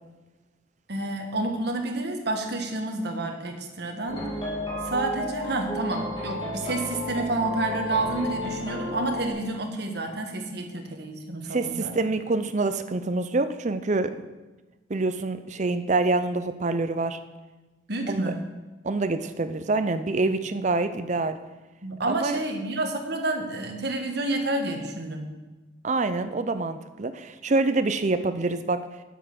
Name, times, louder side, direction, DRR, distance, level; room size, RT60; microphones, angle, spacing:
voice 1, 0.9-4.3 4.8-11.9 17.9-18.4 21.8-25.3, right 2 dB, 55° right, 3 dB, 1.5 m, -29 dB
sound 1, 4.1-9.3, left 1 dB, 25° left, 2.3 m, -32 dB
voice 2, 11.5-14.1 14.9-17.2 18.1-18.3 18.8-21.4 22.1-22.4 25.8-28.8, right 3 dB, 40° right, 10 dB, 0.6 m, -26 dB
9.0 x 8.0 x 6.0 m, 1.2 s
head